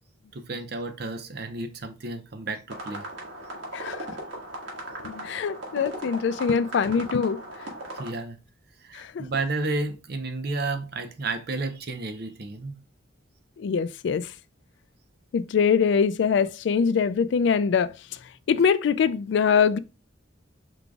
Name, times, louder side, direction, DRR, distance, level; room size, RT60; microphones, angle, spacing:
voice 1, 0.3-3.1 8.0-8.4 8.8-12.8, right 3 dB, 55° right, 0.7 m, -32 dB
sound 1, 2.7-8.1, right 1 dB, 80° right, 1.5 m, -38 dB
voice 2, 3.7-4.1 5.0-7.4 8.9-9.3 13.6-14.3 15.3-17.9 18.5-19.8, left 6 dB, 65° left, 0.3 m, -23 dB
4.8 x 3.8 x 2.2 m
head